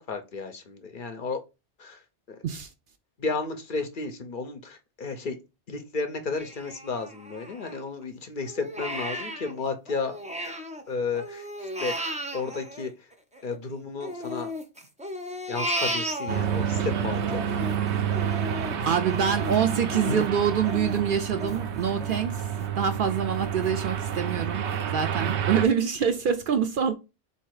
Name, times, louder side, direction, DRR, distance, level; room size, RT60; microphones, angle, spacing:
voice 1, 0.0-1.4 1.8-2.0 2.3-2.4 3.2-5.4 5.7-10.2 10.9-11.5 11.8-12.9 13.4-14.5 15.5-17.6 20.1-20.2, left 4 dB, 50° left, 0.8 m, -33 dB
Crying sobbing, 6.4-8.0 8.4-10.8 11.1-13.6 14.0-16.8 17.2-22.7 23.1-23.2 23.6-24.2 24.7-24.8 25.3-25.4, equal, 10° right, 0.5 m, -35 dB
sound 1, 16.3-25.6, right 9 dB, 85° right, 1.0 m, -29 dB
voice 2, 18.8-22.5 22.8-26.9, right 7 dB, 60° right, 0.6 m, -26 dB
4.0 x 2.8 x 4.6 m
omnidirectional pair, 1.1 m